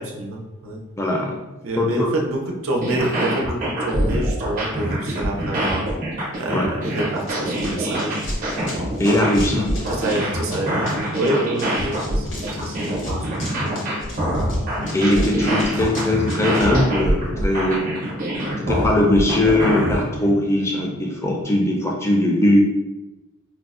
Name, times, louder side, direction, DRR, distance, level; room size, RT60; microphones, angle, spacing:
voice 1, 0.0-0.8 1.6-5.8 6.4-8.2 9.9-13.8 15.3-15.4 15.7-15.9, right 1 dB, 85° right, 0 dB, 0.5 m, -27 dB
voice 2, 1.0-1.4 1.8-2.1 6.5-6.7 8.6-9.7 14.9-17.9 18.6-22.6, left 1 dB, 15° left, -1 dB, 0.4 m, -20 dB
sound 1, 2.7-20.0, right 1 dB, 40° right, 0.6 m, -25 dB
sound 2, 6.8-21.4, left 1 dB, 85° left, 1.3 m, -36 dB
Run, 7.2-16.7, left 2 dB, 65° left, 0.8 m, -39 dB
4.5 x 2.0 x 2.4 m, 1.0 s
head